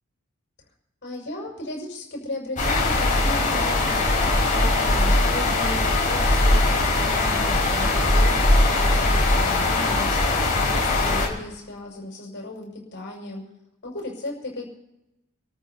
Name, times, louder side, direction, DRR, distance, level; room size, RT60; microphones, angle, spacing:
voice 1, 1.0-13.4 13.8-14.7, left 1 dB, 55° left, -1 dB, 6.3 m, -36 dB
sound 1, 2.6-11.3, left 2 dB, 40° left, 5.7 m, -20 dB
28.5 x 14.0 x 2.9 m, 0.90 s
head